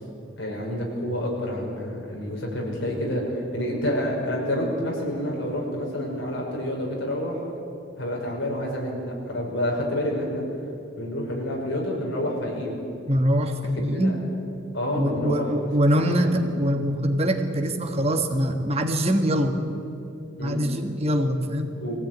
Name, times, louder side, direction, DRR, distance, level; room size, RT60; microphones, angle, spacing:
voice 1, 0.4-7.4 8.0-10.4 11.0-12.8 13.8-14.1 14.7-15.5 16.1-16.3 20.4-20.6 21.8-22.0, left 1 dB, 70° left, -2 dB, 5.9 m, -28 dB
voice 2, 13.1-14.2 14.9-19.6 20.4-21.7, equal, 30° right, 5 dB, 1.5 m, -23 dB
22.5 x 16.0 x 9.4 m, 2.6 s
head